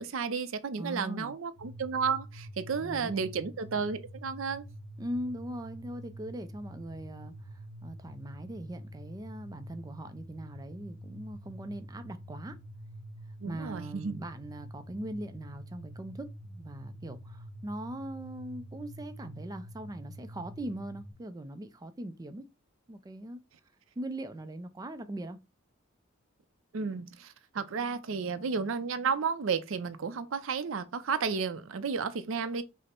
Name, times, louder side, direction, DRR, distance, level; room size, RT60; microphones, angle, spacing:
voice 1, 0.0-4.7 13.4-14.2 26.7-32.6, right 5 dB, 90° right, 0.5 m, -32 dB
voice 2, 0.8-1.3 2.8-3.2 5.0-12.6 13.5-22.5 22.9-23.4 24.0-25.4, right 1 dB, 20° right, 0.3 m, -40 dB
sound 1, 1.6-21.1, equal, 40° left, 1.7 m, -47 dB
4.9 x 2.1 x 4.4 m
head